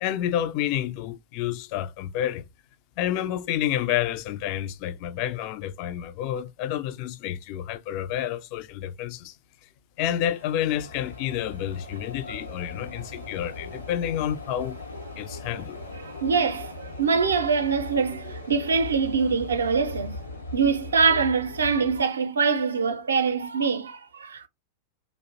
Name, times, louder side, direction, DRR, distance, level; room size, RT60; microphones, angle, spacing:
voice 1, 0.0-2.4 3.0-9.4 10.0-14.8 15.2-15.8, left 11 dB, 45° left, 0.3 m, -29 dB
sound 1, 10.0-22.1, left 2 dB, 85° left, 0.8 m, -39 dB
voice 2, 15.9-20.2 20.5-24.5, right 5 dB, 70° right, 0.5 m, -24 dB
2.4 x 2.0 x 2.7 m
figure-of-eight pair, 90°, 0 cm